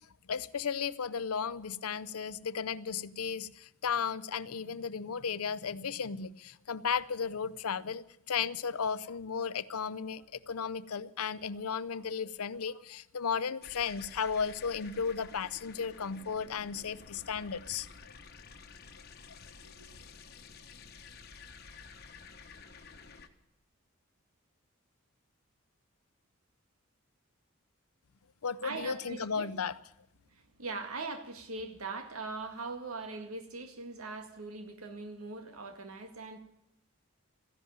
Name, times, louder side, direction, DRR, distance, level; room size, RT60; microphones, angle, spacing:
voice 1, 0.3-17.9 28.4-29.7, left 6 dB, 90° left, 0.6 m, -35 dB
sound 1, 13.6-23.3, left 5 dB, 45° left, 1.2 m, -52 dB
voice 2, 19.5-20.1 28.6-29.5 30.3-36.4, right 3 dB, 80° right, 2.0 m, -41 dB
14.5 x 11.0 x 9.0 m
head